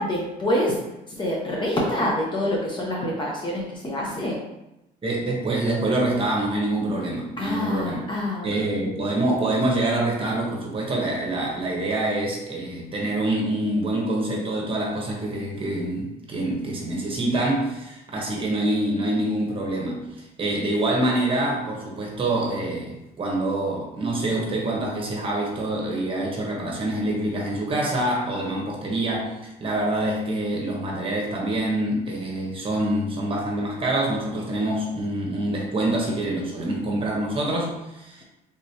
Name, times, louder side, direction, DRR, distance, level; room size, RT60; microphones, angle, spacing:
voice 1, 0.0-4.4 7.4-8.7, left 1 dB, 30° left, -3 dB, 0.7 m, -26 dB
voice 2, 5.0-8.0 8.4-29.3 29.6-38.2, right 1 dB, 30° right, -2 dB, 1.1 m, -26 dB
3.5 x 3.0 x 2.8 m, 0.91 s
cardioid pair, 110°, 17 cm